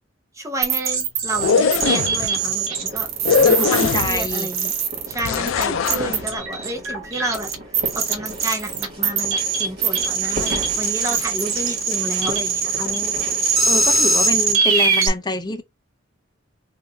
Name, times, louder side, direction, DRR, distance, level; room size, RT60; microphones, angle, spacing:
voice 1, 0.3-3.1 3.5-4.7 5.1-7.5 7.9-12.9, right 1 dB, 15° right, 0.8 m, -31 dB
sound 1, 0.6-15.1, right 5 dB, 80° right, 0.9 m, -22 dB
sound 2, 1.3-2.3 3.2-4.3 5.2-6.2, left 6 dB, 75° left, 0.4 m, -20 dB
sound 3, 1.4-14.5, right 1 dB, 50° right, 1.7 m, -36 dB
voice 2, 3.4-4.5 11.1-11.2 12.8-13.2 13.6-15.6, left 2 dB, 20° left, 0.6 m, -26 dB
3.7 x 2.7 x 2.7 m
head